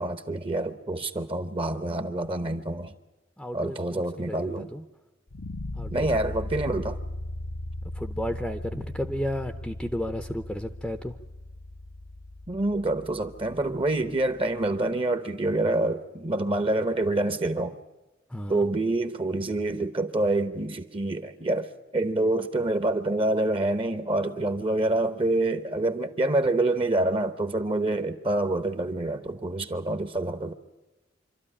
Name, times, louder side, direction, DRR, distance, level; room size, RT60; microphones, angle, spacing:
voice 1, 0.0-2.9 3.5-4.7 5.9-7.0 12.5-17.8 18.5-30.5, right 2 dB, 30° right, 0.9 m, -27 dB
voice 2, 3.4-4.8 5.7-6.3 8.0-11.2 18.3-18.7, equal, 5° left, 0.7 m, -33 dB
sound 1, 5.3-14.3, left 1 dB, 65° left, 0.8 m, -38 dB
26.0 x 13.0 x 9.9 m
head